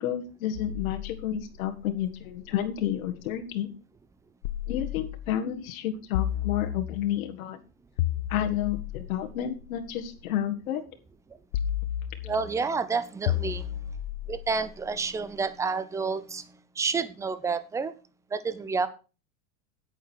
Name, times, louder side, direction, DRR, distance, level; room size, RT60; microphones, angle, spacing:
voice 1, 0.0-3.7 4.7-7.6 8.3-10.8, left 11 dB, 75° left, 1.8 m, -30 dB
sound 1, 0.5-3.3 4.4-5.5 6.1-7.3 8.0-10.2 11.5-12.6 13.3-15.4, left 11 dB, 60° left, 1.0 m, -34 dB
voice 2, 12.2-14.0 14.3-18.0 18.3-18.9, right 4 dB, 5° right, 0.5 m, -30 dB
9.5 x 8.9 x 4.6 m
supercardioid pair, 145°, 42 cm